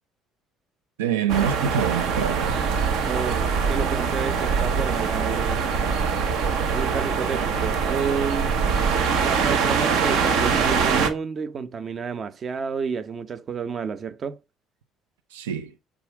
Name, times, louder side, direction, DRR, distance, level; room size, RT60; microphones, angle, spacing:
voice 1, 1.0-2.6 15.3-15.7, right 8 dB, 85° right, 0.5 m, -25 dB
sound 1, 1.3-11.1, right 5 dB, 70° right, 1.2 m, -23 dB
voice 2, 3.0-5.7 6.7-8.6 9.2-14.4, right 6 dB, 45° right, 0.8 m, -30 dB
7.4 x 3.6 x 4.7 m
hypercardioid pair, 60°, 0 cm